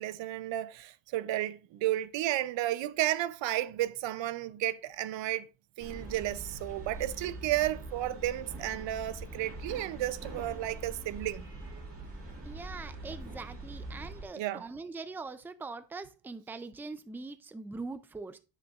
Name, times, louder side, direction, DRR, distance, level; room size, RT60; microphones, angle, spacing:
voice 1, 0.0-5.5 5.8-11.5 14.3-14.6, right 14 dB, 85° right, 0.7 m, -32 dB
sound 1, 5.8-14.2, right 2 dB, 30° right, 2.3 m, -43 dB
voice 2, 12.4-18.4, right 3 dB, 5° right, 0.4 m, -42 dB
9.5 x 6.5 x 2.4 m
cardioid pair, 135°, 43 cm